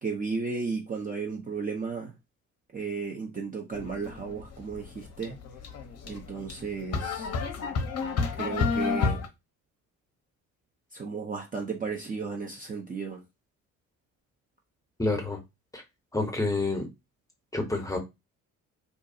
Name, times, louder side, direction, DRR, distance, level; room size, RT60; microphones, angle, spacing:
voice 1, 0.0-2.1 2.7-5.4 6.0-7.3 8.4-9.2 10.9-13.2, right 5 dB, 20° right, 0.6 m, -34 dB
sound 1, 3.7-9.3, left 5 dB, 40° left, 0.7 m, -31 dB
voice 2, 15.0-15.4 15.7-15.8 16.1-16.9 17.5-18.0, left 2 dB, 10° left, 0.8 m, -28 dB
2.5 x 2.2 x 2.7 m
figure-of-eight pair, 50°, 41 cm